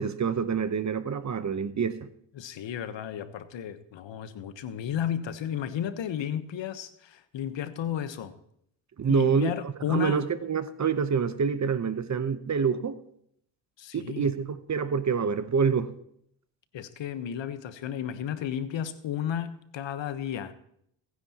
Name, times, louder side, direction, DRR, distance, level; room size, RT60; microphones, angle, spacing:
voice 1, 0.0-2.0 9.0-13.0 13.9-15.9, right 6 dB, 35° right, 0.9 m, -27 dB
voice 2, 2.3-8.3 9.1-10.2 13.8-14.3 16.7-20.5, left 9 dB, 65° left, 1.2 m, -33 dB
23.5 x 9.9 x 3.0 m
supercardioid pair, 70°, 48 cm